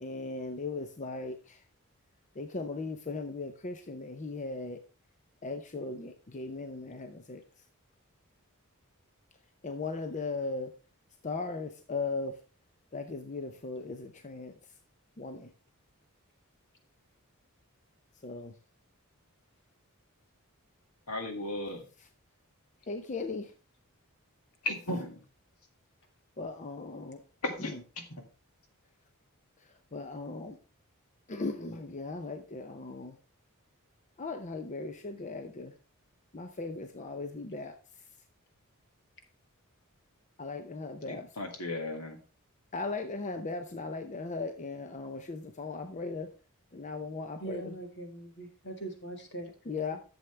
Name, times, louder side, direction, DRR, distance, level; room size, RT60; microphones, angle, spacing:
voice 1, 0.0-1.6 2.4-4.8 5.4-7.4 9.6-10.7 11.2-12.4 12.9-14.5 15.2-15.5 18.2-18.5 22.0-22.1 22.9-23.5 26.4-27.2 27.6-27.8 29.9-30.6 31.3-33.2 34.2-35.7 36.3-37.7 40.4-41.3 42.7-46.3 46.7-47.7 49.7-50.0, left 3 dB, 35° left, 6 dB, 0.6 m, -37 dB
voice 2, 21.1-21.8 24.7-25.1 27.6-27.7 41.0-42.2, left 2 dB, 80° left, 4 dB, 2.0 m, -35 dB
voice 3, 47.4-49.5 49.9-50.0, right 2 dB, 55° left, 4 dB, 2.0 m, -41 dB
11.0 x 7.1 x 3.3 m, 0.36 s
head